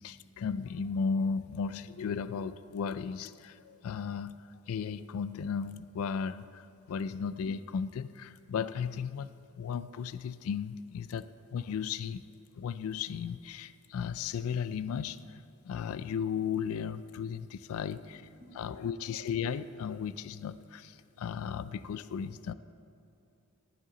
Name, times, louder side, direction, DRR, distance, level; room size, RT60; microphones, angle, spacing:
voice 1, 0.0-4.4 4.7-11.2 11.5-12.3 12.6-18.0 18.6-22.5, left 6 dB, 75° left, 15 dB, 0.3 m, -35 dB
voice 2, 17.6-19.2, right 1 dB, 30° right, -5 dB, 2.3 m, -61 dB
11.0 x 10.0 x 3.9 m, 2.7 s
head